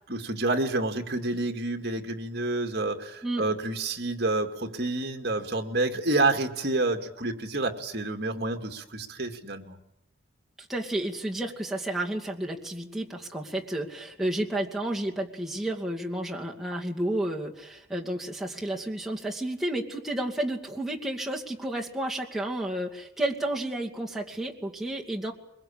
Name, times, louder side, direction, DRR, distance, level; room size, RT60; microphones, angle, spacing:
voice 1, 0.1-9.8, right 2 dB, 55° right, 5 dB, 2.3 m, -28 dB
voice 2, 10.7-25.3, right 1 dB, ahead, -2 dB, 2.4 m, -31 dB
23.0 x 22.0 x 8.8 m, 0.82 s
head